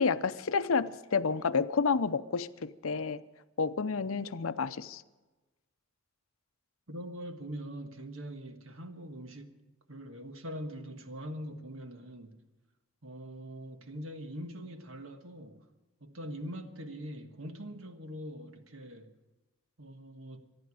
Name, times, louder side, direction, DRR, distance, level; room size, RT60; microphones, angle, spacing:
voice 1, 0.0-3.2 3.6-5.0, left 5 dB, 75° left, 0.6 m, -30 dB
voice 2, 6.9-9.6 9.9-12.4 13.0-15.6 16.0-19.1 19.8-20.5, equal, 70° right, 1.4 m, -43 dB
26.5 x 10.5 x 4.9 m
head